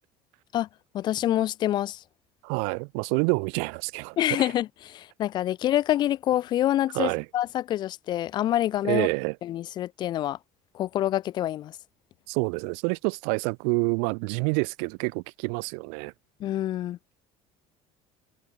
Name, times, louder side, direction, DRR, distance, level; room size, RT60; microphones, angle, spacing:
voice 1, 0.9-2.0 4.2-9.1 9.4-10.4 10.7-11.8 16.4-17.0, left 13 dB, 35° left, 0.4 m, -26 dB
voice 2, 2.4-4.5 6.9-7.2 8.8-9.4 12.3-16.1, right 40 dB or more, 90° right, 1.0 m, -27 dB
cardioid pair, 160°, 13 cm